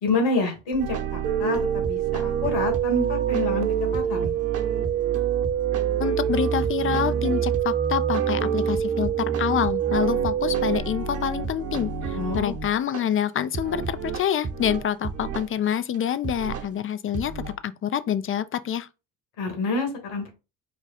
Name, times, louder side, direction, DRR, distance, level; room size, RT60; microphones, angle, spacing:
voice 1, 0.0-4.3 12.1-12.5 19.4-20.3, left 3 dB, 75° left, 2.3 m, -27 dB
sound 1, 0.7-13.0 13.5-15.5 15.9-16.0 16.2-16.7 17.1-17.5, right 6 dB, 35° right, 1.1 m, -31 dB
sound 2, 1.2-10.8, right 10 dB, 70° right, 0.6 m, -26 dB
voice 2, 6.0-18.9, left 9 dB, 30° left, 0.5 m, -27 dB
5.0 x 2.3 x 4.2 m
hypercardioid pair, 65°, 40 cm